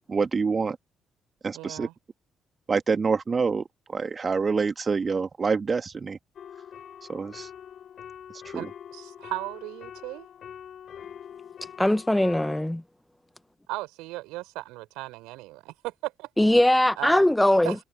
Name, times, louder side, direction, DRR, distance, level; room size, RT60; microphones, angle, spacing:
voice 1, 0.1-0.8 1.4-1.9 2.7-3.6 3.9-6.2 7.1-7.5 8.3-8.7, right 5 dB, 35° right, 2.2 m, -26 dB
voice 2, 1.5-1.9 8.5-10.3 13.7-16.3 17.0-17.3 17.6-17.8, right 20 dB, 65° right, 6.2 m, -36 dB
sound 1, 6.4-12.6, left 9 dB, 50° left, 5.1 m, -44 dB
voice 3, 11.8-12.8 16.4-17.8, left 1 dB, 10° left, 1.1 m, -21 dB
figure-of-eight pair, 40°, 0 cm